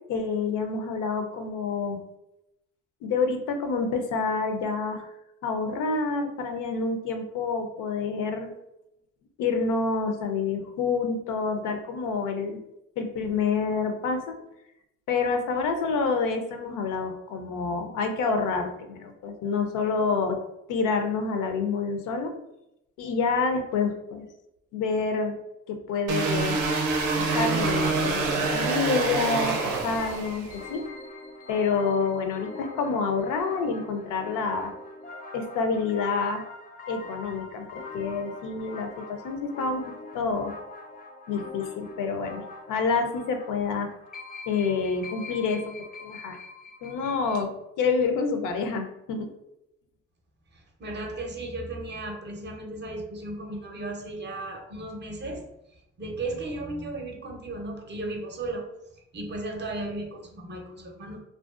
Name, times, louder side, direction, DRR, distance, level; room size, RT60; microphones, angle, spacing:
voice 1, 0.1-2.0 3.0-5.1 5.4-8.5 9.4-12.6 13.0-14.4 15.1-20.4 20.7-22.3 23.0-24.2 24.7-25.4 25.7-26.6 27.2-30.8 31.5-34.7 35.3-36.5 36.9-40.5 41.3-43.9 44.5-45.8 46.0-46.4 46.8-49.3, left 4 dB, 85° left, 5 dB, 0.5 m, -28 dB
sound 1, 26.1-30.6, right 3 dB, 85° right, 0.5 m, -26 dB
sound 2, 29.9-47.4, left 3 dB, 30° left, 0.4 m, -43 dB
voice 2, 50.5-55.5 56.0-58.7 59.1-61.2, right 2 dB, 35° right, 3 dB, 0.5 m, -35 dB
2.5 x 2.1 x 2.3 m, 0.86 s
cardioid pair, 90°, 30 cm